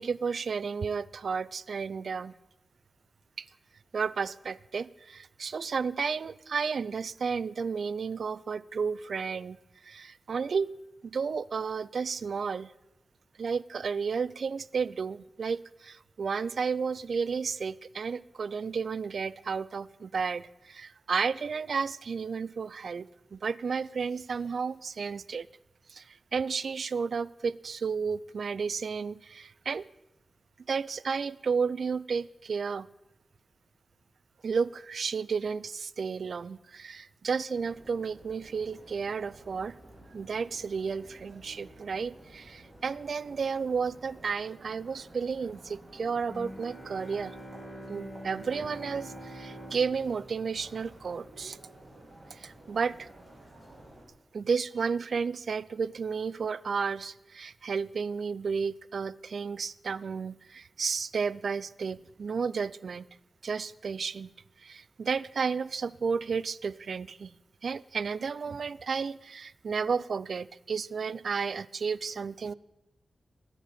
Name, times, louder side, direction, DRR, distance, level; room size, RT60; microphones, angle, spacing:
voice 1, 0.0-2.3 3.4-3.5 3.9-9.6 9.8-10.7 11.0-12.7 13.4-25.5 25.9-29.8 30.7-32.9 34.4-39.8 40.1-47.3 47.9-51.6 52.3-53.1 54.3-63.1 63.4-64.3 64.6-67.3 67.6-72.5, right 5 dB, 70° right, 20 dB, 0.4 m, -32 dB
sound 1, 37.5-54.1, right 1 dB, 35° right, 4.8 m, -53 dB
Bowed string instrument, 46.3-51.5, right 1 dB, ahead, 6.1 m, -45 dB
21.0 x 10.0 x 4.2 m, 0.92 s
wide cardioid pair, 80°, 0 cm